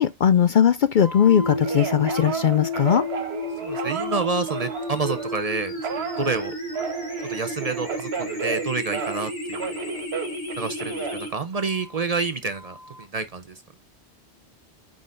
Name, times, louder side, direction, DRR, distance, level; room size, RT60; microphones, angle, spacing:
voice 1, 0.0-3.0, left 9 dB, 60° left, 0.6 m, -19 dB
Telephone, 1.0-5.4 5.8-9.3 9.5-12.0 12.5-13.0, right 6 dB, 70° right, 1.2 m, -33 dB
sound 1, 1.3-11.3, equal, 20° left, 2.9 m, -32 dB
voice 2, 3.6-6.5 7.3-9.9 10.6-13.5, right 4 dB, 45° right, 0.6 m, -28 dB
9.5 x 3.9 x 3.8 m
omnidirectional pair, 1.1 m